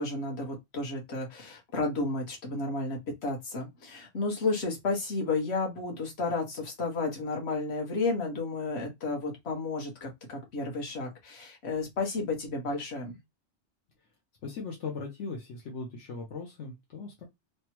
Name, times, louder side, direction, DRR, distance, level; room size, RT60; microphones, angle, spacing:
voice 1, 0.0-13.2, left 3 dB, 65° left, 1.3 m, -32 dB
voice 2, 14.4-17.3, left 4 dB, 85° left, 1.1 m, -39 dB
3.3 x 2.1 x 2.9 m
omnidirectional pair, 1.2 m